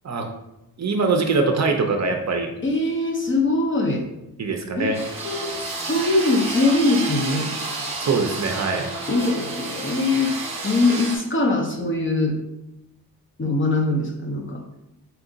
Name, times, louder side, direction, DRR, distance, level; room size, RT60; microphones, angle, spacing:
voice 1, 0.8-2.5 4.4-5.0 8.0-8.9, right 4 dB, 45° right, 3 dB, 0.5 m, -22 dB
voice 2, 2.6-4.1 4.8-4.9 5.2-5.5 5.8-7.5 9.1-10.3 10.6-12.4 13.4-14.6, left 2 dB, 35° left, 1 dB, 0.6 m, -22 dB
sound 1, 4.9-11.2, right 3 dB, 15° right, 0.9 m, -30 dB
4.4 x 2.4 x 3.8 m, 0.88 s
wide cardioid pair, 150°, 37 cm